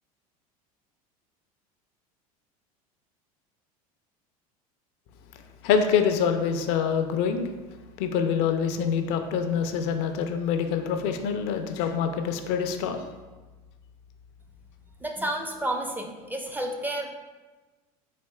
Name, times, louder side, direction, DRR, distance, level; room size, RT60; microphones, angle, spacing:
voice 1, 5.6-7.5 8.0-13.1, left 7 dB, 60° left, 7 dB, 0.4 m, -25 dB
voice 2, 15.0-17.1, right 1 dB, 10° right, 2 dB, 0.4 m, -31 dB
4.1 x 2.8 x 2.2 m, 1.2 s
hypercardioid pair, 80°, 19 cm